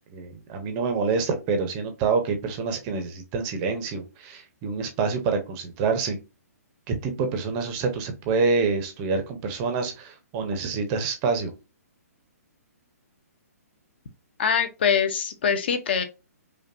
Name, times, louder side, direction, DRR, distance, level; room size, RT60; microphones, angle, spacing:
voice 1, 0.1-6.2 6.9-11.5, right 4 dB, 20° right, 0.6 m, -27 dB
voice 2, 14.4-16.0, left 7 dB, 40° left, 0.6 m, -23 dB
5.3 x 2.2 x 2.5 m
hypercardioid pair, 170°, 9 cm